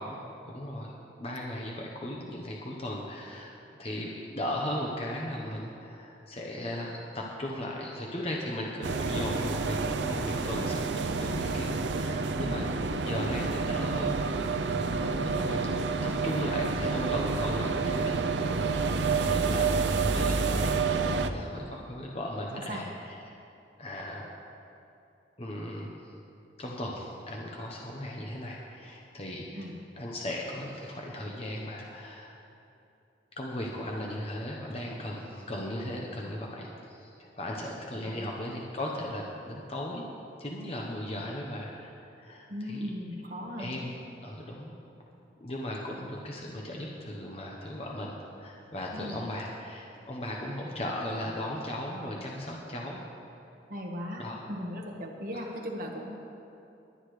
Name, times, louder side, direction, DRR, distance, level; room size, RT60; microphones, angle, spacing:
voice 1, 0.5-0.9 1.2-12.6 13.0-14.5 14.8-15.7 16.0-18.1 18.8-23.2 23.8-24.3 25.4-26.1 26.6-29.7 30.0-32.4 33.4-40.0 40.4-42.9 43.6-43.9 44.2-44.7 45.4-53.0 54.2-54.3 55.3-55.4, left 1 dB, 35° left, -2 dB, 1.0 m, -37 dB
sound 1, 8.8-21.3, right 4 dB, 85° right, 0.6 m, -29 dB
voice 2, 42.5-43.7 48.9-49.2 53.7-54.2 54.5-56.2, equal, 50° right, 0 dB, 1.5 m, -38 dB
22.0 x 9.8 x 3.3 m, 2.8 s
head